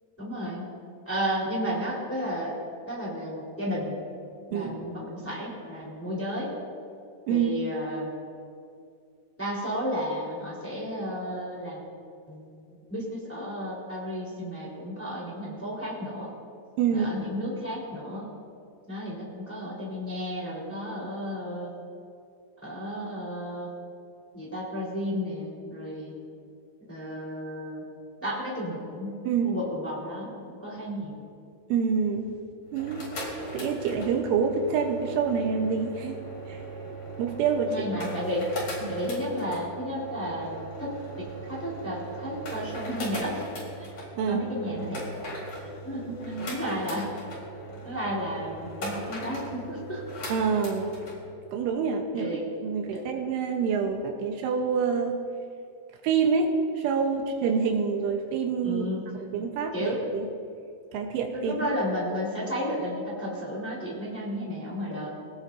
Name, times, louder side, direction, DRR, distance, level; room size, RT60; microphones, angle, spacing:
voice 1, 0.2-0.7 1.0-2.5 2.9-4.0 4.5-6.5 7.3-8.1 9.4-11.8 12.3-16.3 16.9-18.3 18.9-21.7 22.6-23.7 24.3-26.1 26.9-27.8 28.2-29.2 29.4-31.2 37.7-38.5 38.9-43.4 43.8-43.9 44.3-45.0 45.8-47.1 47.8-50.0 52.1-52.4 52.9-53.0 58.6-59.1 59.7-60.0 61.3-65.1, equal, 5° left, -5 dB, 3.3 m, -33 dB
voice 2, 16.8-17.1 29.2-29.5 31.7-32.3 32.7-33.2 33.5-36.2 36.5-36.6 37.2-37.9 38.8-39.0 44.1-44.5 46.1-46.6 50.3-51.0 51.5-55.2 56.0-56.5 56.8-58.8 59.2-60.3 60.9-61.5, right 6 dB, 80° right, 3 dB, 3.4 m, -27 dB
slideshow projector noisy fan last two slides sticky, 32.6-51.2, right 1 dB, 35° left, 4.6 m, -39 dB
24.5 x 18.5 x 2.7 m, 2.5 s
omnidirectional pair, 5.7 m